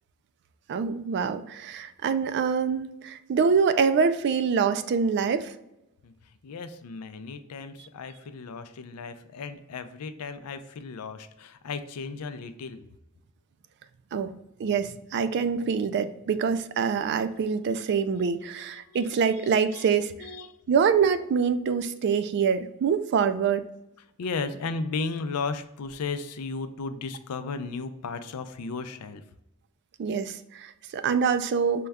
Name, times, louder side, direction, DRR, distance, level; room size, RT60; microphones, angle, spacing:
voice 1, 0.7-5.5 14.1-14.3 14.6-20.1 20.7-23.6 30.0-31.9, right 6 dB, 50° right, 11 dB, 0.3 m, -25 dB
voice 2, 6.4-12.8 18.9-19.9 20.2-20.6 24.2-29.2, left 4 dB, 90° left, 10 dB, 0.4 m, -35 dB
5.2 x 2.3 x 3.4 m, 0.88 s
head